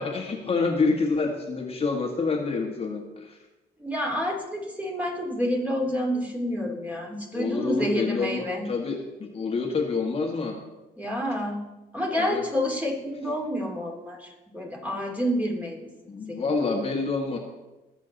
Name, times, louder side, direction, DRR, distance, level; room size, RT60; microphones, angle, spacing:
voice 1, 0.0-3.4 7.3-10.6 12.2-12.4 16.1-17.4, left 4 dB, 35° left, 1 dB, 1.7 m, -27 dB
voice 2, 3.8-8.7 11.0-11.6 11.9-15.8 16.3-16.7, equal, 10° right, -1 dB, 3.3 m, -29 dB
20.0 x 7.5 x 4.1 m, 1.0 s
cardioid pair, 95°, 17 cm